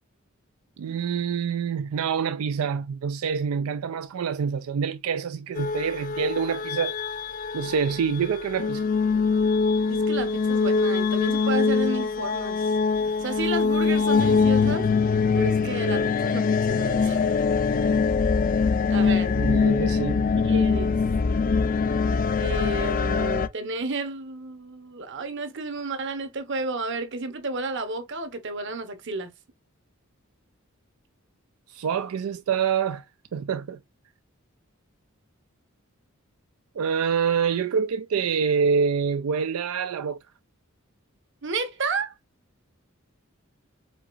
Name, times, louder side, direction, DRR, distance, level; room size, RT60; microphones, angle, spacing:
voice 1, 0.8-7.0 7.5-8.9 19.4-20.3 31.7-33.0 33.3-33.8 36.8-40.2, right 6 dB, 90° right, 0.4 m, -26 dB
sound 1, 5.5-23.5, left 5 dB, 40° left, 0.4 m, -23 dB
voice 2, 9.9-12.7 13.2-14.9 15.3-17.3 18.9-19.4 20.3-21.0 22.4-29.3 41.4-42.1, right 3 dB, 60° right, 1.0 m, -32 dB
5.0 x 3.9 x 2.5 m
head